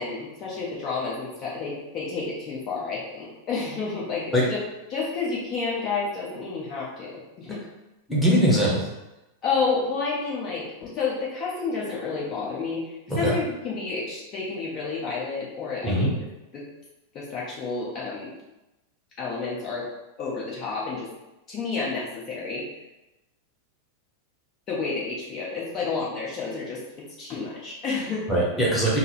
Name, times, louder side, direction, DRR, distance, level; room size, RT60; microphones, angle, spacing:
voice 1, 0.0-4.6 4.9-7.7 9.4-16.2 16.5-16.6 17.1-18.3 19.2-19.9 20.2-21.1 21.5-22.6 24.7-28.3, left 4 dB, 35° left, -6 dB, 1.0 m, -30 dB
voice 2, 8.1-8.9 13.1-13.3 15.8-16.1 28.3-29.0, equal, 5° left, -6 dB, 1.1 m, -21 dB
3.9 x 2.1 x 4.2 m, 0.97 s
figure-of-eight pair, 90°, 0 cm